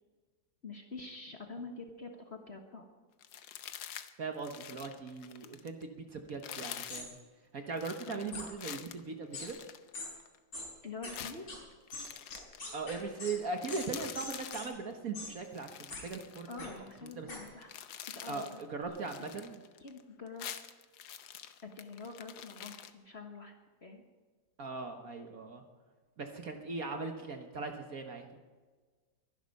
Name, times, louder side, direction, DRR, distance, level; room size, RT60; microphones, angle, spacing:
voice 1, 0.6-2.9 8.1-8.2 10.8-11.5 16.5-17.7 18.1-18.6 19.8-20.5 21.6-23.5 23.8-24.0, left 3 dB, 35° left, 3 dB, 1.4 m, -46 dB
sound 1, 3.2-4.1 4.4-5.8 6.3-7.1 7.8-10.4 11.1-12.6 13.0-13.2 13.4-14.7 15.4-17.1 17.5-18.6 18.9-20.0 20.3-22.9, left 10 dB, 70° left, 1.5 m, -46 dB
voice 2, 4.2-7.2 7.5-9.6 12.7-16.7 17.0-17.3 18.2-19.6 24.6-25.6 26.2-28.3, right 4 dB, 50° right, 5 dB, 1.5 m, -39 dB
sound 2, 6.9-7.1 8.3-8.5 9.3-9.5 9.9-10.1 10.5-10.7 11.0-11.1 11.5-11.6 11.9-13.3 13.7-13.9 14.1-14.6 15.1-15.3 15.9-16.0 16.6-16.7 17.3-17.4, left 2 dB, 90° left, 5.4 m, -42 dB
23.0 x 11.0 x 5.4 m, 1.4 s
omnidirectional pair, 2.2 m